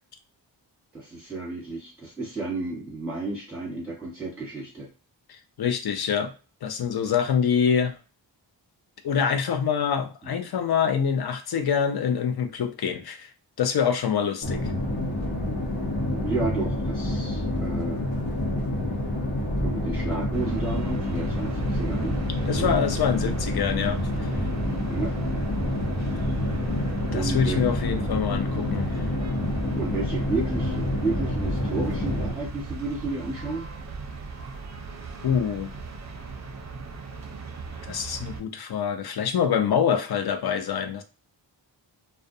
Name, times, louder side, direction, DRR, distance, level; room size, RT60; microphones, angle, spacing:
voice 1, 0.9-4.9 10.2-10.3 16.1-18.0 19.6-22.2 22.6-22.8 24.9-25.1 27.1-27.7 29.7-33.7, right 3 dB, 5° right, -6 dB, 1.0 m, -32 dB
voice 2, 5.3-6.3 6.6-8.0 9.0-13.3 13.6-14.7 22.5-24.0 27.1-29.0 35.2-35.7 37.9-41.0, left 7 dB, 60° left, 7 dB, 0.5 m, -25 dB
sound 1, 14.4-32.3, left 1 dB, 75° left, 0.9 m, -28 dB
sound 2, 20.3-38.4, right 4 dB, 40° right, 0.5 m, -38 dB
2.3 x 2.1 x 2.6 m, 0.33 s
wide cardioid pair, 65°, 44 cm